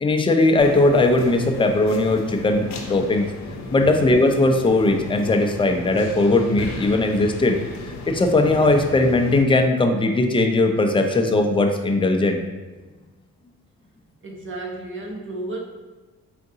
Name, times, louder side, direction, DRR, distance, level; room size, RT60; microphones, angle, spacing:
voice 1, 0.0-3.3 3.7-7.6 8.1-12.4, left 2 dB, 15° left, 4 dB, 0.5 m, -19 dB
sound 1, 0.6-9.4, left 2 dB, 65° left, 0.7 m, -35 dB
voice 2, 14.2-15.6, right 2 dB, 40° right, 0 dB, 0.9 m, -32 dB
3.8 x 2.5 x 3.8 m, 1.3 s
cardioid pair, 90°, 30 cm